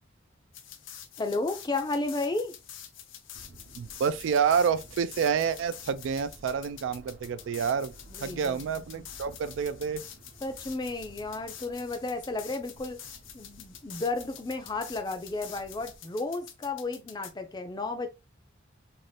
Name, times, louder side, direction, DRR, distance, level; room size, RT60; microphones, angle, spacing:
sound 1, 0.5-17.3, left 9 dB, 75° left, 0.5 m, -47 dB
voice 1, 1.2-2.5 8.1-8.6 8.9-9.1 10.4-13.0 13.3-18.1, left 3 dB, 20° left, 0.4 m, -33 dB
sound 2, 3.3-16.0, right 1 dB, 55° right, 0.7 m, -54 dB
voice 2, 3.8-7.9 8.2-10.1, right 6 dB, 75° right, 0.3 m, -28 dB
2.7 x 2.5 x 3.2 m
head